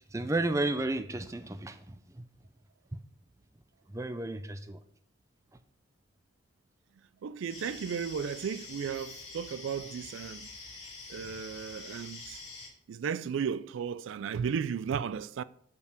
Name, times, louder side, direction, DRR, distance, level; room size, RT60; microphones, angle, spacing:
voice 1, 0.0-2.2 3.9-4.8, right 2 dB, 15° right, 0.4 m, -33 dB
voice 2, 7.2-10.5 11.1-12.4 12.9-15.4, right 7 dB, 80° right, 0.3 m, -34 dB
sound 1, 7.5-12.7, left 3 dB, 35° left, 2.1 m, -46 dB
6.9 x 5.4 x 4.9 m
head